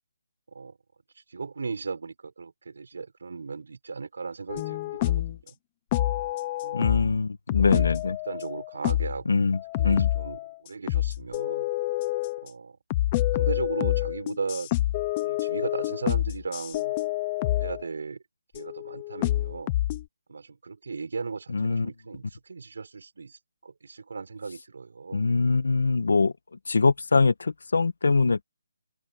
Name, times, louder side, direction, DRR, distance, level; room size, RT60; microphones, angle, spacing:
voice 1, 1.3-5.5 6.6-6.8 7.6-7.9 8.3-9.5 9.8-11.7 12.4-12.8 13.3-14.7 15.2-16.9 17.6-18.2 18.5-19.7 20.3-25.3, right 4 dB, 55° right, 6.5 m, -36 dB
sound 1, 4.5-5.4 5.9-7.2 7.5-9.2 9.5-10.5 10.9-12.5 12.9-17.8 18.6-20.0, left 15 dB, 15° left, 0.7 m, -27 dB
voice 2, 6.7-8.2 9.3-9.6 9.8-10.1 21.5-21.9 25.1-26.3 26.7-28.4, left 4 dB, 65° left, 1.7 m, -23 dB
hypercardioid pair, 180°, 0 cm